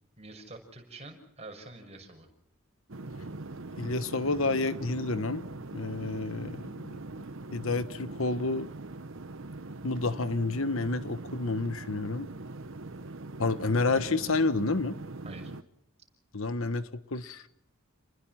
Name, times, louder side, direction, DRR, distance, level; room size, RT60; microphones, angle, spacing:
voice 1, 0.2-2.3 15.2-15.5, right 2 dB, 30° right, 3 dB, 6.3 m, -47 dB
sound 1, 2.9-15.6, right 2 dB, 65° right, 1.1 m, -42 dB
voice 2, 3.8-5.4 5.7-7.0 7.5-8.7 9.8-12.3 13.4-15.0 16.3-17.4, left 3 dB, 65° left, 12 dB, 1.3 m, -29 dB
30.0 x 21.5 x 5.8 m, 0.77 s
head